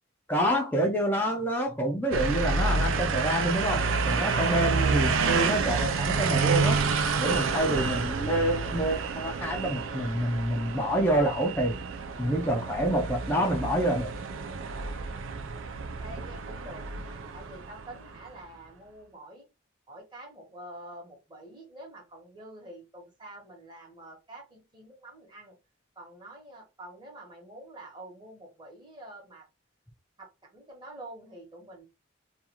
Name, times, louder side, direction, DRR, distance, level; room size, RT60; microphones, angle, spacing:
voice 1, 0.3-6.8 7.2-11.7 12.2-14.1, right 1 dB, 10° left, 0.4 m, -27 dB
sound 1, 2.1-18.3, right 4 dB, 70° right, 0.4 m, -29 dB
voice 2, 16.0-19.4 19.9-25.6 26.0-29.4 30.2-31.9, right 1 dB, 20° right, 1.0 m, -47 dB
2.4 x 2.3 x 2.9 m
head